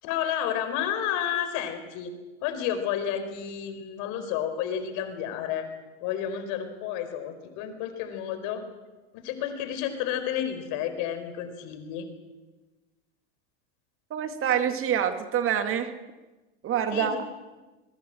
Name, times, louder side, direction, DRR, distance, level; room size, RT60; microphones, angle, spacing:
voice 1, 0.0-2.1 2.4-5.7 6.0-8.6 9.1-12.1 16.9-17.2, left 9 dB, 60° left, 9 dB, 4.7 m, -31 dB
voice 2, 14.1-15.9 16.6-17.2, right 9 dB, 40° right, 8 dB, 2.1 m, -26 dB
22.0 x 21.5 x 7.7 m, 1.2 s
hypercardioid pair, 105°, 35 cm